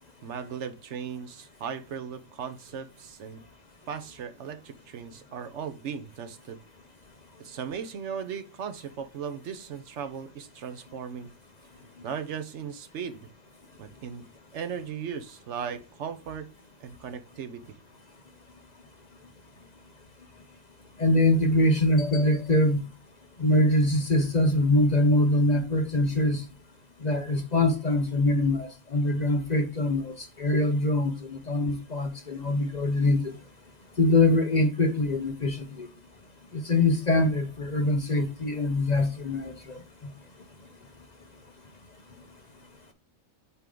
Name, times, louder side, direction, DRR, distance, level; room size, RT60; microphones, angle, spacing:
voice 1, 0.2-3.4 3.9-6.6 7.4-11.3 12.0-13.3 13.8-14.2 14.5-16.5 16.8-17.6, right 7 dB, 70° right, 1.0 m, -37 dB
voice 2, 21.0-22.9 23.4-26.4 27.0-33.3 34.0-35.9 36.5-39.8, left 1 dB, 40° left, 0.8 m, -24 dB
8.3 x 3.6 x 3.7 m
omnidirectional pair, 1.3 m